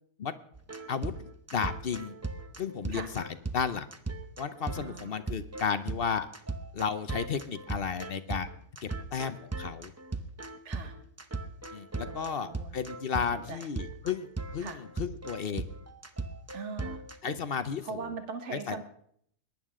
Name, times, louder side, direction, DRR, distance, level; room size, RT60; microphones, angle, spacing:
sound 1, 0.5-17.4, right 3 dB, 15° right, 0.5 m, -38 dB
voice 1, 0.9-2.1 2.6-3.3 3.5-3.9 4.4-6.3 6.7-8.5 8.8-9.9 11.7-14.3 14.5-15.7 17.2-18.1 18.5-18.8, left 6 dB, 50° left, 12 dB, 0.8 m, -33 dB
voice 2, 4.7-5.2 10.6-10.9 12.1-12.7 13.1-13.6 14.6-14.8 16.5-17.0 17.8-18.8, right 5 dB, 55° right, 7 dB, 1.7 m, -41 dB
22.0 x 10.5 x 3.7 m, 0.65 s
omnidirectional pair, 1.5 m